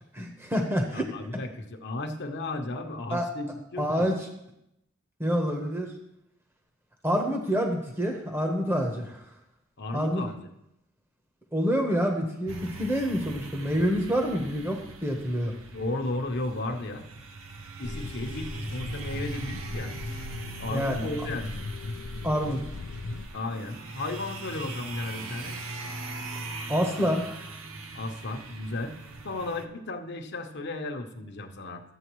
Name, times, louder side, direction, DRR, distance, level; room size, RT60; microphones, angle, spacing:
voice 1, 0.1-1.1 3.1-3.3 3.8-4.1 5.2-5.9 7.0-9.2 9.9-10.2 11.5-15.5 20.7-21.1 22.2-22.6 26.7-27.2, equal, 10° right, 2 dB, 1.0 m, -27 dB
voice 2, 0.9-4.1 9.8-10.4 15.7-17.1 17.8-19.9 20.6-21.6 23.3-25.6 27.9-29.0 29.2-31.8, left 2 dB, 55° left, 5 dB, 0.9 m, -34 dB
sound 1, 12.5-29.7, right 3 dB, 70° right, 0.7 m, -41 dB
sound 2, 17.8-23.3, left 3 dB, 75° left, 0.5 m, -38 dB
12.5 x 7.6 x 3.1 m, 0.82 s
head